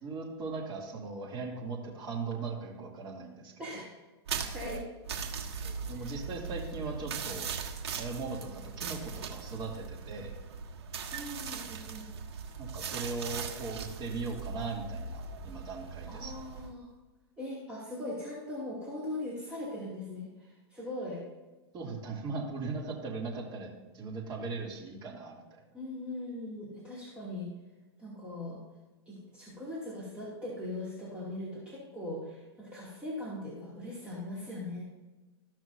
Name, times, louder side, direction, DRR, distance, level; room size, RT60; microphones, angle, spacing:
voice 1, 0.0-3.5 5.6-7.5 8.0-10.3 12.6-16.4 21.7-23.7 23.9-25.6, right 4 dB, 30° right, -2 dB, 2.6 m, -39 dB
voice 2, 3.6-3.9 4.5-4.8 6.0-6.1 11.1-12.1 16.1-16.9 17.4-21.2 25.7-27.5 28.0-28.6 29.1-34.8, left 1 dB, 10° right, -8 dB, 2.5 m, -40 dB
sound 1, 4.3-16.7, right 5 dB, 75° right, 1.4 m, -39 dB
14.5 x 6.0 x 2.7 m, 1.2 s
hypercardioid pair, 120°, 14 cm